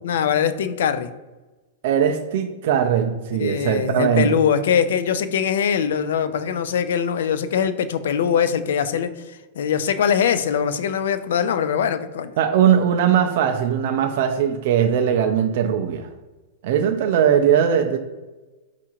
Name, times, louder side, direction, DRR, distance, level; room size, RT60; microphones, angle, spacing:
voice 1, 0.0-1.1 3.4-12.3, left 8 dB, 75° left, 12 dB, 0.3 m, -22 dB
voice 2, 1.8-4.4 12.4-16.1 16.6-18.0, right 8 dB, 55° right, 4 dB, 0.3 m, -20 dB
4.4 x 2.4 x 2.9 m, 1.2 s
supercardioid pair, 150°, 0 cm